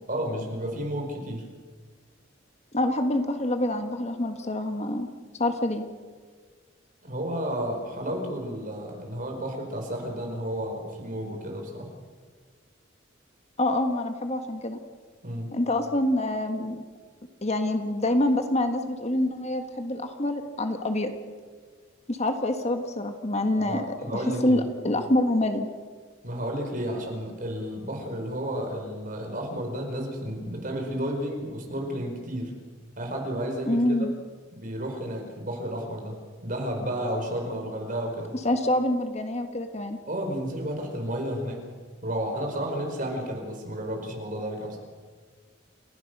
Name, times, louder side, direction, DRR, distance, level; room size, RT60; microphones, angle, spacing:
voice 1, 0.1-1.4 7.0-11.9 15.2-15.5 23.6-24.6 26.2-32.6 33.0-34.0 34.5-38.3 40.1-41.6 42.0-44.8, equal, 45° right, 2 dB, 4.8 m, -32 dB
voice 2, 2.7-5.1 5.4-5.8 13.6-14.8 15.5-16.8 17.4-21.1 22.1-23.9 24.1-25.7 33.6-34.1 38.4-40.0, left 1 dB, 35° left, 6 dB, 1.5 m, -26 dB
29.0 x 16.0 x 6.7 m, 1.5 s
head